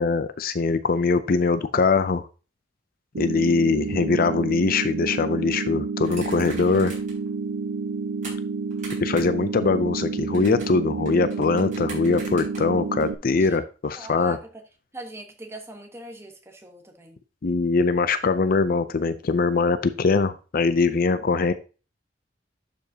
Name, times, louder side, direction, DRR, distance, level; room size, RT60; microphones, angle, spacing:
voice 1, 0.0-2.3 3.2-6.9 9.0-14.4 17.4-21.5, left 4 dB, 55° left, 12 dB, 0.5 m, -22 dB
sound 1, 3.1-13.1, right 4 dB, 75° right, 0.6 m, -30 dB
sound 2, 6.0-7.3 7.6-8.3 8.7-9.4 9.7-13.1, right 3 dB, 45° right, 4.2 m, -42 dB
voice 2, 13.9-14.6 14.9-17.2, right 2 dB, 15° right, 4 dB, 1.2 m, -41 dB
11.0 x 5.2 x 2.8 m, 0.34 s
head